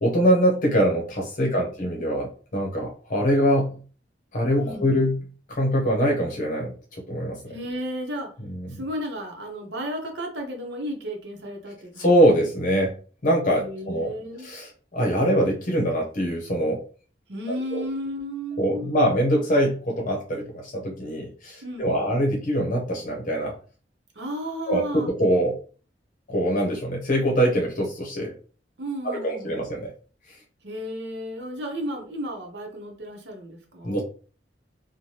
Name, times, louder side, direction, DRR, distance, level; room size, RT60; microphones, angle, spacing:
voice 1, 0.0-3.8 4.3-5.2 5.5-6.7 7.1-7.6 8.6-8.7 12.0-12.9 13.2-14.1 14.4-16.8 17.7-17.8 18.6-23.5 24.7-25.6 26.3-28.3 29.0-29.9 33.8-34.0, equal, 50° left, 0 dB, 0.7 m, -23 dB
voice 2, 4.6-5.1 7.5-8.3 8.8-12.3 13.6-14.5 17.3-19.1 21.6-22.2 24.1-25.1 28.8-29.7 30.6-34.0, equal, 70° right, 2 dB, 0.8 m, -34 dB
3.1 x 2.1 x 2.8 m, 0.39 s
head